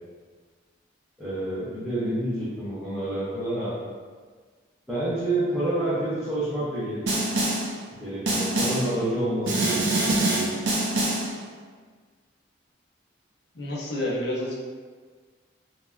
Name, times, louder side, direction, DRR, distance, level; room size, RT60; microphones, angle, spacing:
voice 1, 1.2-3.7 4.9-7.0 8.0-10.6, right 1 dB, ahead, -14 dB, 0.6 m, -28 dB
Snare drum, 7.1-7.8 8.3-9.0 9.5-11.4, right 1 dB, 65° right, 0.5 m, -25 dB
voice 2, 13.5-14.5, left 1 dB, 60° left, -5 dB, 0.6 m, -29 dB
3.1 x 2.1 x 2.3 m, 1.5 s
head